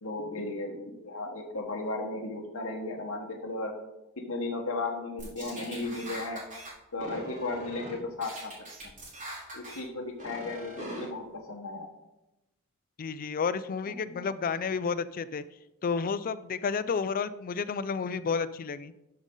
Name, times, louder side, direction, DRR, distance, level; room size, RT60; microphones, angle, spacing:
voice 1, 0.0-3.7 4.2-6.4 6.9-8.5 9.5-11.9 13.9-14.2, left 2 dB, 65° left, 0 dB, 1.3 m, -35 dB
sound 1, 5.2-6.7 7.0-7.9 8.2-9.8 10.2-11.0, right 1 dB, 35° right, 3.4 m, -42 dB
voice 2, 13.0-15.4 15.8-18.9, left 5 dB, 40° left, 14 dB, 0.4 m, -31 dB
12.0 x 5.3 x 3.8 m, 0.93 s
head